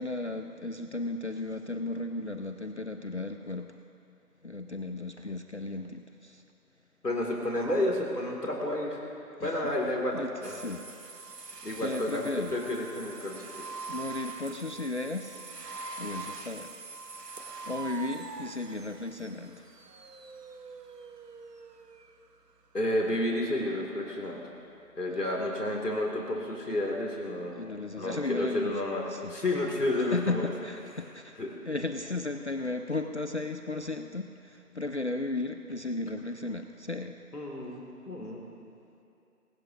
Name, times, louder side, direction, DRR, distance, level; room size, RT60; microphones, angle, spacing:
voice 1, 0.0-3.8 4.4-6.4 9.4-10.9 11.8-12.6 13.9-15.5 16.0-16.7 17.6-19.7 25.1-25.4 27.5-28.7 29.1-29.4 30.0-31.4 31.6-37.2, left 2 dB, 45° left, 6 dB, 0.5 m, -35 dB
voice 2, 7.0-9.0 9.4-10.6 11.6-13.4 22.7-24.4 25.0-27.6 28.0-30.5 31.4-31.5 37.3-38.4, left 1 dB, 80° left, -1 dB, 2.8 m, -31 dB
sound 1, 10.4-22.1, right 4 dB, 80° right, 1.0 m, -44 dB
23.0 x 16.5 x 2.8 m, 2.7 s
figure-of-eight pair, 160°, 47 cm